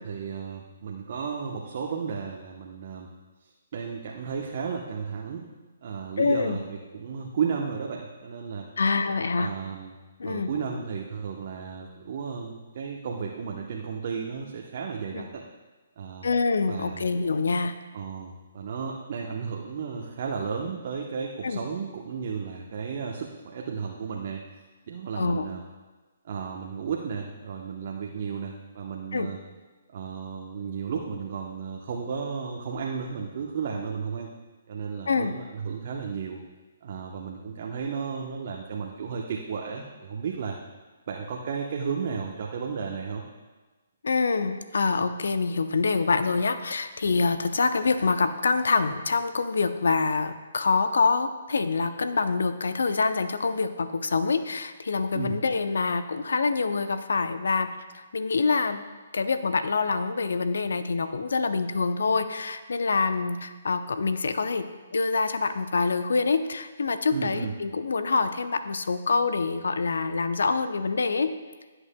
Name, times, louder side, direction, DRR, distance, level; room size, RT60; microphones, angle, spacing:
voice 1, 0.0-3.1 3.4-5.5 5.8-8.7 9.4-10.0 10.2-15.4 16.0-16.3 16.7-17.0 17.9-24.5 24.9-25.6 26.2-29.4 29.9-34.3 34.7-36.4 36.8-40.6 41.1-43.2 55.1-55.4 67.1-67.5, right 6 dB, 50° right, 0 dB, 0.9 m, -33 dB
voice 2, 6.2-6.6 8.8-9.5 10.2-10.5 15.1-15.3 16.2-17.7 21.4-21.6 25.2-25.5 29.1-29.3 35.1-35.3 44.0-57.7 57.9-58.8 59.1-64.7 64.9-71.3, left 4 dB, 75° left, 10 dB, 0.7 m, -26 dB
17.0 x 7.9 x 2.2 m, 1.3 s
figure-of-eight pair, 140°, 0 cm